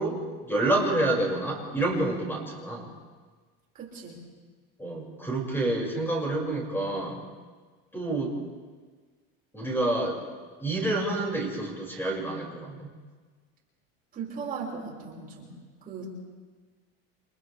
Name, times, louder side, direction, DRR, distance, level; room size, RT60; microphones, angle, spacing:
voice 1, 0.0-2.9 4.8-7.2 7.9-8.3 9.5-10.2 10.6-12.9, right 2 dB, 5° left, -1 dB, 5.8 m, -28 dB
voice 2, 3.7-4.2 14.1-16.0, right 5 dB, 30° right, -4 dB, 5.3 m, -38 dB
29.5 x 28.0 x 3.4 m, 1.4 s
cardioid pair, 150°, 30 cm